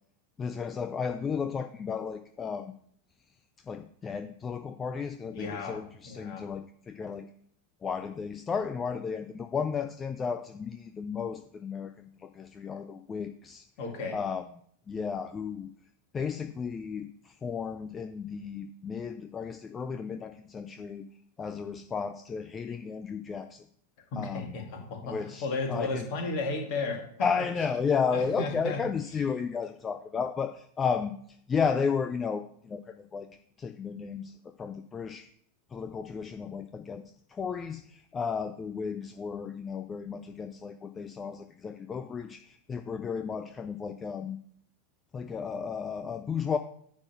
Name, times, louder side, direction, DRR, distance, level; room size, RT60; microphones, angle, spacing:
voice 1, 0.4-2.7 3.7-7.3 7.8-13.7 14.1-14.4 14.9-15.7 16.1-21.0 21.4-23.6 24.2-24.6 25.0-26.1 27.2-33.3 33.6-35.3 35.7-37.0 37.3-44.4 45.1-46.6, left 6 dB, 20° left, 9 dB, 0.4 m, -33 dB
voice 2, 5.3-5.8 6.0-6.4 13.8-14.2 24.1-27.0 28.1-28.8, left 3 dB, 45° left, 1 dB, 2.4 m, -34 dB
9.7 x 3.9 x 6.3 m, 0.64 s
figure-of-eight pair, 90°, 0 cm